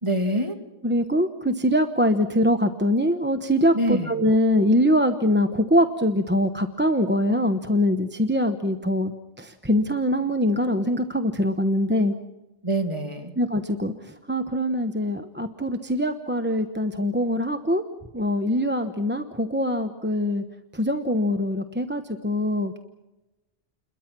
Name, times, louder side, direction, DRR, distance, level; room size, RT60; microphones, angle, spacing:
voice 1, 0.0-0.6 3.7-4.1 12.6-13.3, right 1 dB, 30° right, 4 dB, 2.5 m, -25 dB
voice 2, 0.8-9.1 9.4-12.1 13.4-13.9 14.3-17.8 18.1-20.4 20.7-22.8, equal, 10° right, 7 dB, 0.9 m, -23 dB
29.0 x 22.0 x 6.1 m, 1.0 s
omnidirectional pair, 1.1 m